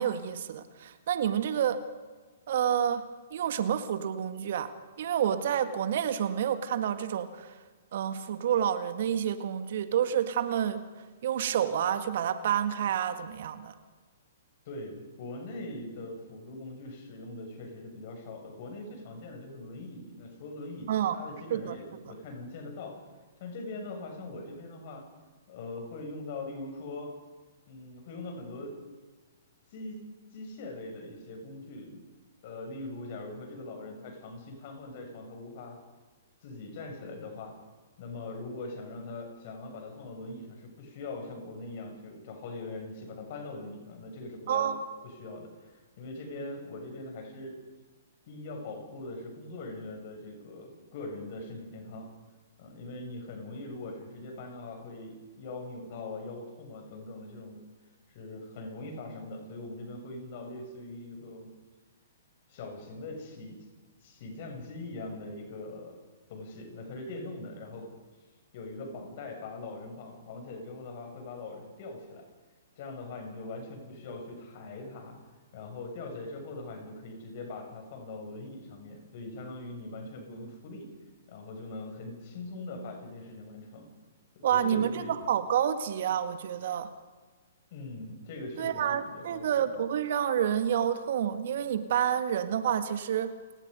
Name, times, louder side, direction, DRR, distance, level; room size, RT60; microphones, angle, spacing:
voice 1, 0.0-1.8 2.5-3.0 3.3-4.7 5.0-7.5 7.9-10.8 11.2-13.7 20.9-21.2 21.5-21.8 44.5-44.8 84.4-86.9 88.6-93.3, right 9 dB, 55° right, 9 dB, 1.9 m, -29 dB
voice 2, 14.7-23.0 23.4-25.1 25.5-27.2 27.7-28.9 29.7-30.0 30.3-32.0 32.4-35.8 36.4-37.6 38.0-44.7 45.2-47.6 48.3-52.1 52.6-57.6 58.1-61.5 62.5-63.7 64.0-66.0 66.3-67.9 68.5-72.3 72.8-75.2 75.5-81.0 81.3-83.9 84.4-85.2 87.7-89.7, left 2 dB, 50° left, 3 dB, 7.0 m, -41 dB
29.5 x 19.0 x 5.4 m, 1.4 s
figure-of-eight pair, 120°, 0 cm